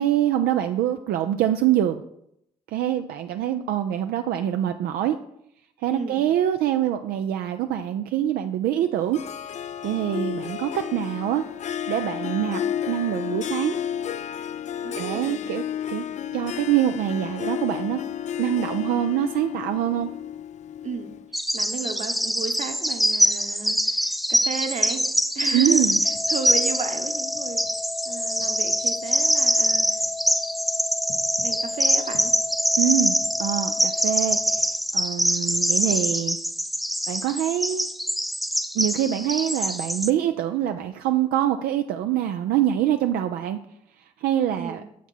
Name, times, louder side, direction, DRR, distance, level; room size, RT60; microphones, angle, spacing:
voice 1, 0.0-2.0 2.7-5.2 5.8-9.2 9.8-11.4 11.9-12.6 12.9-13.8 15.0-16.1 16.3-18.0 18.4-20.1 25.5-26.0 32.8-34.6 34.9-36.4 37.1-37.9 38.7-43.6 44.2-44.8, right 11 dB, 75° right, 6 dB, 0.4 m, -24 dB
voice 2, 5.9-6.2 14.8-15.4 20.8-25.0 25.3-25.9 26.3-27.7 28.0-30.0 31.4-32.3 44.6-44.8, right 5 dB, 50° right, 7 dB, 1.1 m, -34 dB
Harp, 9.1-21.3, left 9 dB, 50° left, 0.4 m, -32 dB
Bird vocalization bird call bird song, 21.3-40.1, equal, ahead, 0.5 m, -24 dB
sound 1, 26.0-34.6, left 4 dB, 85° left, 1.2 m, -35 dB
7.0 x 5.8 x 4.5 m, 0.76 s
hypercardioid pair, 50°, 16 cm